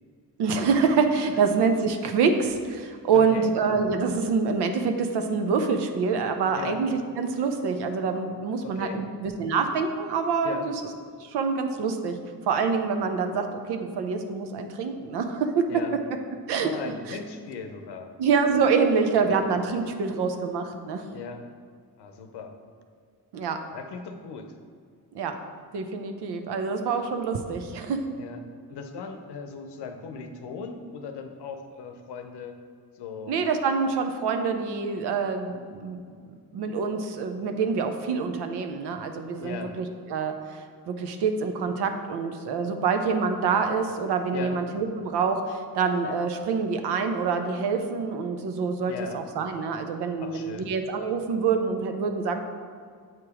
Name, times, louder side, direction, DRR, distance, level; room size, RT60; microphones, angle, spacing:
voice 1, 0.4-10.7 11.2-12.2 12.5-15.7 16.5-16.7 17.1-17.2 18.2-21.0 23.3-23.6 25.1-25.3 25.7-28.0 33.3-36.0 36.5-52.4, right 5 dB, 85° right, 6 dB, 0.7 m, -26 dB
voice 2, 3.1-3.5 6.6-6.8 8.6-9.1 10.4-10.7 15.7-16.0 16.6-18.1 19.2-19.4 21.1-21.5 22.0-22.6 23.7-24.6 28.2-28.4 28.7-32.6 32.9-33.4 39.4-39.8 44.3-44.6 48.9-49.2 50.2-50.7, left 5 dB, 85° left, 6 dB, 0.7 m, -38 dB
7.7 x 3.0 x 4.8 m, 2.1 s
cardioid pair, 60°, 39 cm